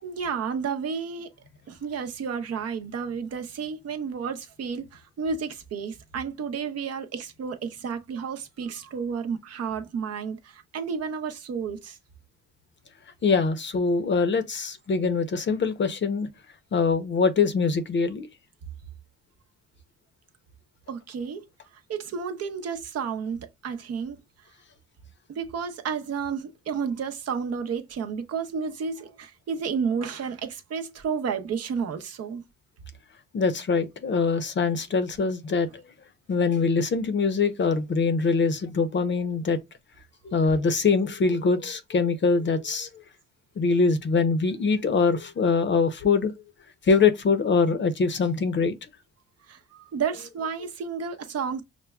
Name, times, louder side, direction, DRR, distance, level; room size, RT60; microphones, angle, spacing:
voice 1, 0.0-1.3 1.7-12.0 20.9-21.4 21.9-24.2 25.3-32.4 49.5-51.6, right 6 dB, 55° right, 0.7 m, -31 dB
voice 2, 13.2-16.3 16.7-18.3 33.3-35.7 36.3-39.6 40.2-42.9 43.6-46.3 46.9-48.7, left 4 dB, 40° left, 0.6 m, -23 dB
5.8 x 2.1 x 2.2 m
cardioid pair, 90°, 30 cm